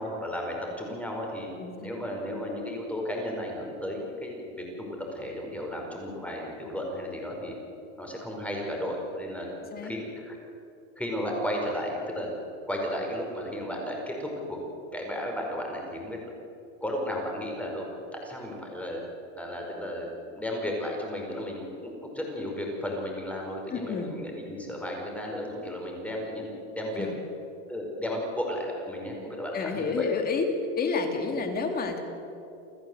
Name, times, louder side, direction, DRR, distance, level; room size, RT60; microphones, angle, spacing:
voice 1, 0.0-1.5 1.8-7.6 8.0-9.5 9.8-10.4 11.0-12.3 12.7-14.6 14.9-16.3 16.8-19.0 19.4-20.1 20.3-27.1 27.7-30.1, equal, 5° left, 0 dB, 5.0 m, -34 dB
voice 2, 1.6-2.0 9.7-9.9 23.7-24.1 27.0-27.2 29.5-30.5 30.8-32.0, left 4 dB, 25° left, 5 dB, 2.8 m, -30 dB
29.0 x 14.5 x 8.0 m, 2.8 s
supercardioid pair, 150°, 37 cm